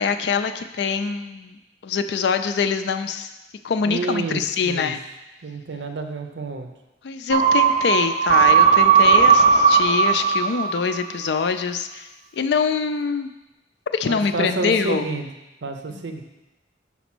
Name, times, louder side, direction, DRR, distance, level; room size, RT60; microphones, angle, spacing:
voice 1, 0.0-3.3 3.6-5.0 7.0-12.1 12.3-13.3 13.9-15.0, left 5 dB, 65° left, 9 dB, 0.4 m, -24 dB
voice 2, 3.8-4.9 5.4-6.7 14.0-15.3 15.6-16.2, right 3 dB, 75° right, 6 dB, 0.7 m, -29 dB
sound 1, 7.3-11.1 11.4-11.5, right 6 dB, 40° right, 0.4 m, -16 dB
5.9 x 4.0 x 6.1 m, 0.99 s
head